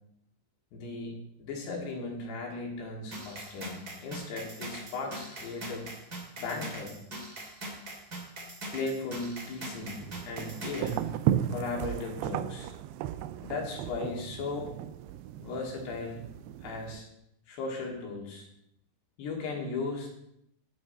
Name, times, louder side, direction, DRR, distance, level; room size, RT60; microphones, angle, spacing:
voice 1, 0.7-1.1 1.4-5.9 6.4-7.0 8.7-11.1 11.5-12.7 13.4-14.7 15.4-16.2 16.6-17.1 17.5-18.5 19.2-20.1, left 3 dB, 75° left, -1 dB, 4.5 m, -36 dB
sound 1, 3.1-11.0, right 1 dB, 30° right, 2.2 m, -42 dB
sound 2, 9.8-17.0, right 11 dB, 80° right, 2.5 m, -35 dB
12.5 x 9.8 x 4.2 m, 0.78 s
omnidirectional pair, 4.9 m